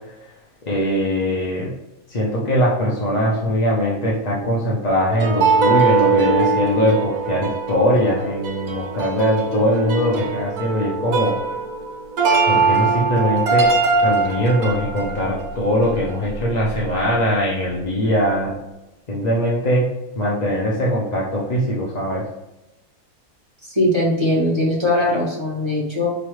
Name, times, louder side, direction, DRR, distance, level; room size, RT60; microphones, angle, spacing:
voice 1, 0.7-1.7 2.1-11.4 12.5-13.7 14.0-18.5 19.1-19.9 20.2-22.2, equal, 40° left, -5 dB, 0.6 m, -21 dB
sound 1, 5.1-16.4 16.7-16.8, right 4 dB, 80° right, 1.3 m, -21 dB
voice 2, 23.6-26.1, left 1 dB, 20° right, -5 dB, 1.2 m, -20 dB
4.9 x 3.0 x 3.1 m, 0.98 s
omnidirectional pair, 1.6 m